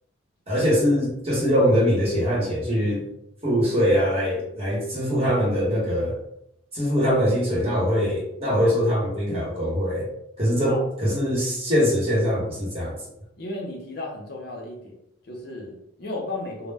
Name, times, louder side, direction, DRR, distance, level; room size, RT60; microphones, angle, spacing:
voice 1, 0.5-3.1 3.4-6.2 6.7-10.1 10.4-13.0, equal, 30° right, -5 dB, 0.9 m, -22 dB
voice 2, 13.4-14.9 15.3-16.7, left 2 dB, 50° left, -1 dB, 0.5 m, -34 dB
2.1 x 2.0 x 3.3 m, 0.77 s
head